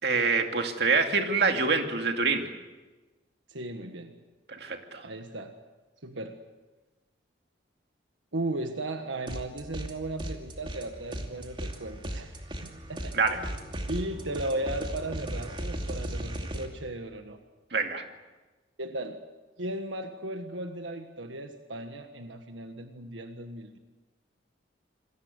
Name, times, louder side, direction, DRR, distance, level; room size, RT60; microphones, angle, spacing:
voice 1, 0.0-2.5 4.5-5.1 13.1-13.4 17.7-18.0, right 4 dB, 60° right, 5 dB, 2.5 m, -26 dB
voice 2, 3.5-4.1 5.0-5.5 6.0-6.4 8.3-13.4 13.9-17.4 18.8-19.2 19.6-23.8, right 1 dB, 85° right, 6 dB, 1.5 m, -36 dB
sound 1, 9.3-9.9 10.2-16.7, right 1 dB, 25° right, 2.6 m, -36 dB
27.5 x 21.5 x 8.2 m, 1.2 s
head